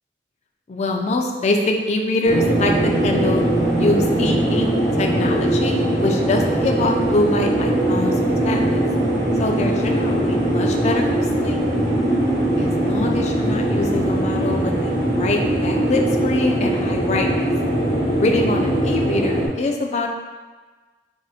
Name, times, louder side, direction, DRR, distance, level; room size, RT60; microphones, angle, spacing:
voice 1, 0.7-3.5 3.8-4.7 5.0-8.8 9.4-11.6 12.6-17.5 18.2-20.1, left 2 dB, 40° left, 2 dB, 0.3 m, -24 dB
sound 1, 2.2-19.5, right 1 dB, 70° right, 1.2 m, -21 dB
4.9 x 2.5 x 2.4 m, 1.4 s
head